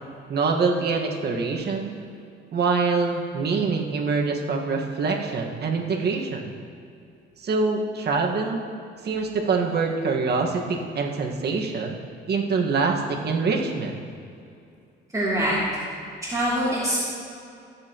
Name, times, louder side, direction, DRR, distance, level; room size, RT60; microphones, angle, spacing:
voice 1, 0.3-1.9 2.5-6.5 7.4-8.7 9.0-12.0 12.3-14.0, right 4 dB, 55° right, 0 dB, 1.7 m, -25 dB
voice 2, 15.1-15.6 16.2-17.0, equal, 15° right, -8 dB, 2.9 m, -24 dB
20.0 x 7.5 x 3.0 m, 2.5 s
cardioid pair, 90°, 20 cm